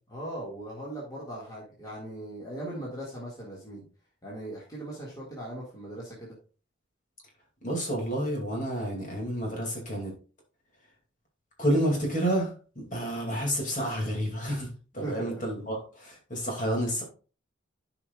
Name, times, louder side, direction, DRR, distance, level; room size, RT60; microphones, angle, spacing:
voice 1, 0.1-3.9 4.2-6.4 15.0-15.3, right 1 dB, 20° left, -5 dB, 1.9 m, -39 dB
voice 2, 7.6-10.1 11.6-17.0, equal, 40° left, 0 dB, 2.5 m, -30 dB
13.0 x 5.1 x 2.4 m, 0.36 s
head